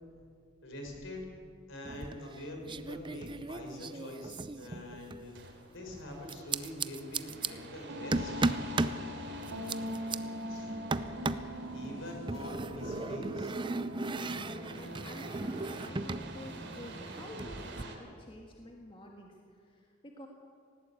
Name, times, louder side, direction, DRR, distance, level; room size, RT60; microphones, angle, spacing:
voice 1, 0.6-1.3 1.7-5.4 5.7-8.5 10.5-10.7 11.7-13.5, left 1 dB, 65° left, 2 dB, 5.3 m, -44 dB
sound 1, 1.9-2.4 2.7-5.3 6.3-7.5 8.1-9.0 9.4-10.2 10.9-11.5 12.3-16.3 16.5-17.8, right 3 dB, 25° right, 0.6 m, -36 dB
sound 2, 5.2-18.0, right 2 dB, 60° right, 3.1 m, -49 dB
sound 3, 7.9-17.0, left 1 dB, 90° right, 3.1 m, -42 dB
voice 2, 14.8-20.3, left 1 dB, 25° left, 1 dB, 1.6 m, -49 dB
19.5 x 17.0 x 8.5 m, 2.2 s
head